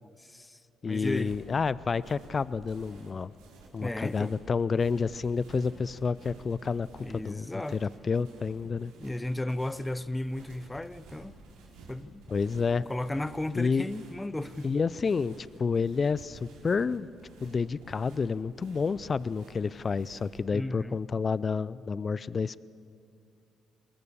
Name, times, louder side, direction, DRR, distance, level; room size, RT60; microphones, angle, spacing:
voice 1, 0.2-0.6 0.9-1.3 3.8-4.3 7.0-7.8 9.0-11.4 11.9-12.2 12.9-14.7 20.5-21.0, left 1 dB, 15° left, 0.8 m, -34 dB
voice 2, 0.8-3.3 3.7-8.9 12.3-12.9 13.5-13.9 14.6-17.1 17.4-22.6, left 5 dB, 40° left, 0.5 m, -29 dB
sound 1, 1.2-20.4, right 3 dB, 80° right, 5.1 m, -52 dB
27.0 x 21.5 x 6.9 m
hypercardioid pair, 50°, 0 cm